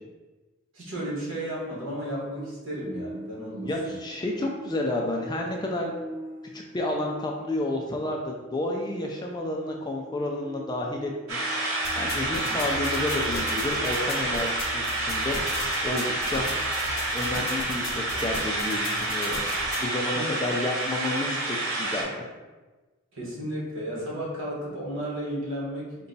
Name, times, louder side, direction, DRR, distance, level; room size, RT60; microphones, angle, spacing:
voice 1, 0.7-3.7 12.4-12.5 20.1-20.4 23.1-26.1, right 1 dB, 60° right, -5 dB, 1.3 m, -33 dB
sound 1, 2.4-18.9 19.2-19.3, equal, 5° right, 1.0 m, -44 dB
voice 2, 3.6-5.9 6.5-11.4 12.0-15.4 15.8-16.5 17.1-19.4 19.8-22.3, left 2 dB, 20° left, 0 dB, 0.3 m, -30 dB
sound 2, 11.3-22.0, right 2 dB, 80° right, 0.8 m, -28 dB
sound 3, 11.8-19.8, left 2 dB, 70° left, 0.7 m, -37 dB
3.9 x 2.2 x 3.9 m, 1.2 s
head